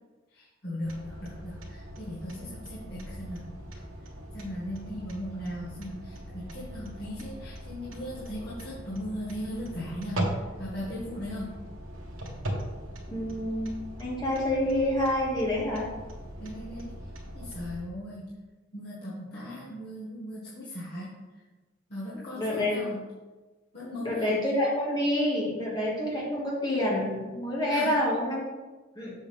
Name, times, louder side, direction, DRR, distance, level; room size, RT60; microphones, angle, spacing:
voice 1, 0.3-3.5 4.3-11.5 16.4-16.9 17.3-18.3 18.7-21.2 21.9-23.0 23.7-24.4 27.7-28.0, equal, 50° left, -9 dB, 1.7 m, -38 dB
sound 1, 0.8-17.8, right 1 dB, 90° right, 1.4 m, -39 dB
voice 2, 13.1-15.8 22.4-22.8 24.0-28.4 29.0-29.1, left 1 dB, 20° left, -5 dB, 2.0 m, -28 dB
7.2 x 6.5 x 3.6 m, 1.2 s
head